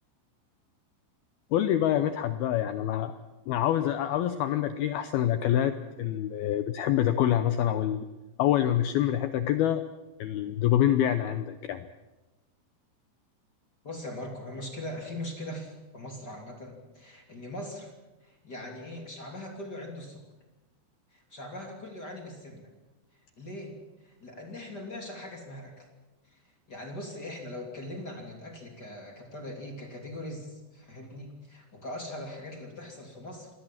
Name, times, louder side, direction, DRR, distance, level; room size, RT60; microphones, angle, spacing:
voice 1, 1.5-3.1 3.5-8.1 8.4-9.8 10.2-11.9, left 11 dB, 85° left, 10 dB, 2.1 m, -26 dB
voice 2, 13.8-17.9 18.2-20.2 21.1-22.7 23.4-23.7 24.0-25.9 26.2-33.5, left 1 dB, 25° left, 2 dB, 2.6 m, -41 dB
26.0 x 19.0 x 7.4 m, 1.1 s
omnidirectional pair, 5.5 m